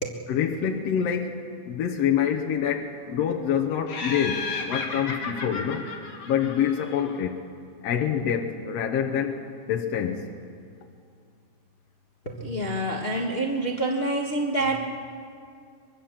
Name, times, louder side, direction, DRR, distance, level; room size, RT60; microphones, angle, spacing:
voice 1, 0.3-5.9 6.2-7.4 7.8-9.4 9.7-10.3, left 8 dB, 65° left, 3 dB, 1.9 m, -26 dB
Laughter, 3.9-7.2, left 4 dB, 85° left, 3.9 m, -34 dB
voice 2, 12.2-14.8, right 2 dB, 30° left, -1 dB, 1.1 m, -27 dB
24.0 x 22.5 x 7.4 m, 2.3 s
omnidirectional pair, 3.5 m